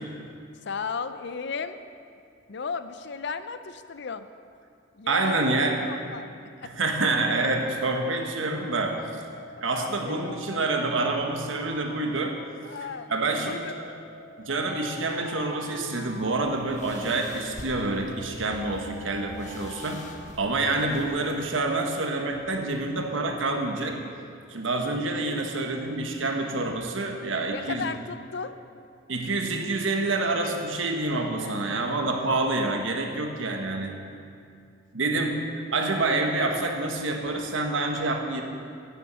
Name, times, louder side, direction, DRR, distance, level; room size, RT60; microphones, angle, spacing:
voice 1, 0.6-1.8 2.5-4.3 4.9-5.5 5.8-6.3 6.6-6.9 9.6-10.7 12.6-13.7 27.5-28.6 31.4-32.1 34.0-34.1, left 5 dB, 60° left, 11 dB, 0.5 m, -35 dB
voice 2, 5.1-5.8 6.6-9.0 9.6-12.4 13.1-13.9 14.4-20.0 20.4-24.0 24.5-27.9 29.1-34.0 34.9-35.4 35.7-38.4, right 2 dB, 80° right, 3 dB, 1.3 m, -27 dB
Alarm, 9.1-12.8 13.5-17.2 17.9-21.1, left 2 dB, 20° right, 2.3 m, -46 dB
sound 1, 16.1-21.3, left 1 dB, 40° left, 1.3 m, -45 dB
11.0 x 7.3 x 8.2 m, 2.4 s
head